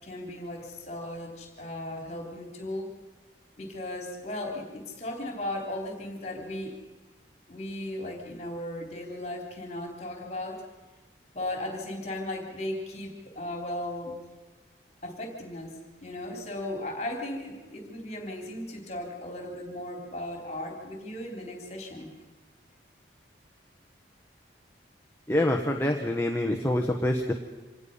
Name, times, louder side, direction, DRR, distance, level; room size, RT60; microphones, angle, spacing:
voice 1, 0.0-2.9 3.6-6.8 7.5-10.6 11.3-14.2 15.0-22.1, left 1 dB, 35° left, 2 dB, 3.7 m, -36 dB
voice 2, 25.3-27.3, left 1 dB, 15° left, 2 dB, 1.3 m, -26 dB
26.5 x 19.0 x 5.6 m, 1.3 s
head